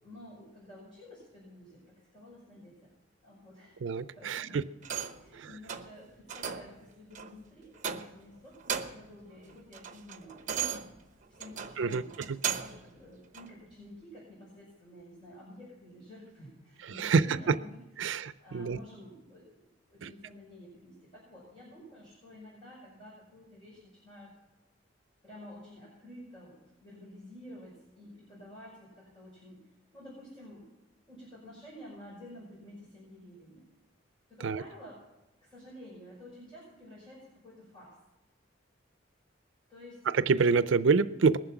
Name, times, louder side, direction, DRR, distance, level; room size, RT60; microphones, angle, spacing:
voice 1, 0.0-2.9 3.2-3.8 4.1-4.6 5.2-10.9 11.3-19.6 19.9-24.3 25.2-30.7 31.1-33.6 34.3-35.0 35.4-38.0 39.7-40.1, left 1 dB, 25° left, -7 dB, 5.7 m, -51 dB
voice 2, 3.8-4.6 11.8-12.0 16.9-17.2 18.0-18.8 20.0-20.1 34.4-34.6 40.1-41.4, right 4 dB, 75° right, 14 dB, 0.4 m, -26 dB
sound 1, 4.8-5.3 5.7-5.9 6.3-6.7 7.1-7.3 7.8-8.3 8.6-9.1 9.5-12.8 13.3-13.5, right 8 dB, 40° right, 0.9 m, -36 dB
20.5 x 7.6 x 5.9 m, 1.0 s
head